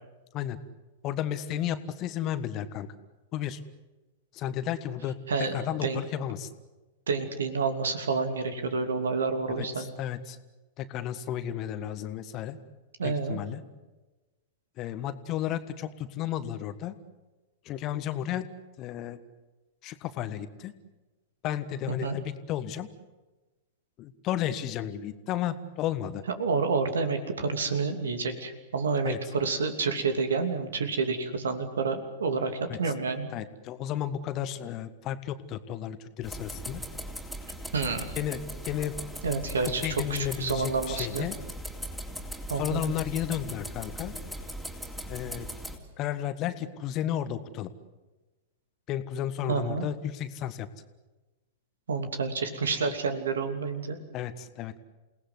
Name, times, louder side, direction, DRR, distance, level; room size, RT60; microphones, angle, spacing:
voice 1, 1.0-2.9 3.3-3.6 4.3-6.5 9.5-10.4 10.8-12.6 13.0-13.6 14.8-16.9 17.6-18.4 18.8-19.2 19.8-20.7 21.4-22.9 24.0-26.2 29.0-29.2 32.7-32.8 33.3-36.8 38.2-39.0 39.8-41.4 42.5-44.1 45.1-45.5 46.0-47.7 48.9-50.7 54.1-54.8, left 10 dB, 35° left, 12 dB, 1.4 m, -33 dB
voice 2, 7.1-10.0 13.0-13.4 22.0-22.2 26.4-33.3 37.7-38.1 39.2-41.2 42.5-42.8 49.5-49.9 51.9-54.0, right 4 dB, 70° right, 8 dB, 2.8 m, -29 dB
sound 1, 36.2-45.8, equal, ahead, 3.5 m, -39 dB
28.5 x 18.5 x 8.1 m, 1.1 s
figure-of-eight pair, 100°, 0 cm